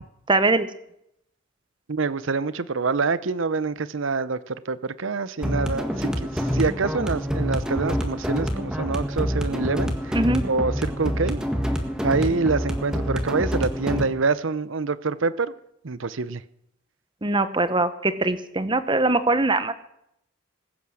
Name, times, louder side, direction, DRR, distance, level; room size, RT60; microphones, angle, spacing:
voice 1, 0.3-0.7 10.1-10.4 17.2-19.7, right 2 dB, 25° right, 0.9 m, -22 dB
voice 2, 1.9-10.2 10.4-11.4 12.0-15.5 15.8-16.4, right 4 dB, 65° right, 0.7 m, -26 dB
sound 1, 5.4-14.1, equal, 5° right, 1.7 m, -26 dB
20.5 x 9.4 x 6.4 m
head